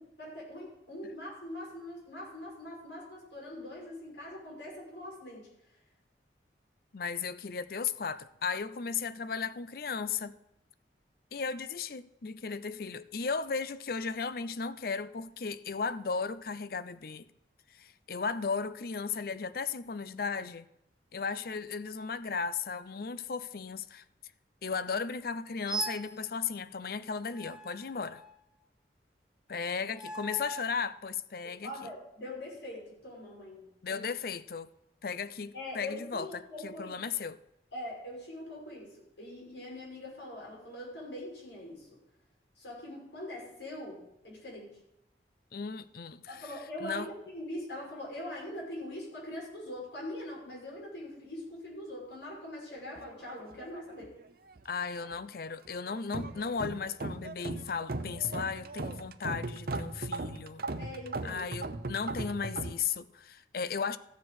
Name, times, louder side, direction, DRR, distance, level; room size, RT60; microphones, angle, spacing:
voice 1, 0.0-5.5 31.6-34.1 35.5-36.9 37.7-42.0 42.6-44.8 46.3-54.1 60.8-61.5, left 1 dB, 80° left, 6.0 m, -42 dB
voice 2, 6.9-10.3 11.3-17.3 17.8-20.7 21.1-24.0 24.6-28.2 29.5-31.7 33.8-34.7 35.0-37.4 45.5-46.4 46.8-47.1 54.6-60.6 61.2-64.0, left 5 dB, 55° left, 0.5 m, -35 dB
sound 1, 25.7-26.2 27.3-28.6 29.9-30.8, right 4 dB, 5° right, 0.9 m, -40 dB
sound 2, 52.9-54.2 54.5-55.2 55.7-62.7, right 2 dB, 55° right, 0.7 m, -38 dB
15.0 x 7.4 x 6.4 m
head